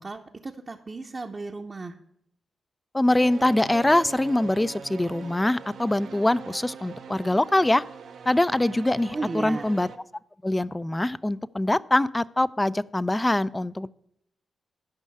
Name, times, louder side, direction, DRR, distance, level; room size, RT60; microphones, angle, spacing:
voice 1, 0.0-1.9 9.1-9.7, right 3 dB, 40° right, 0 dB, 0.8 m, -35 dB
voice 2, 2.9-7.8 8.3-9.9 10.4-13.9, left 1 dB, 20° left, 19 dB, 0.4 m, -23 dB
sound 1, 3.1-10.0, right 6 dB, 75° right, 0.7 m, -41 dB
11.5 x 5.5 x 5.4 m, 0.75 s
supercardioid pair, 50°, 0 cm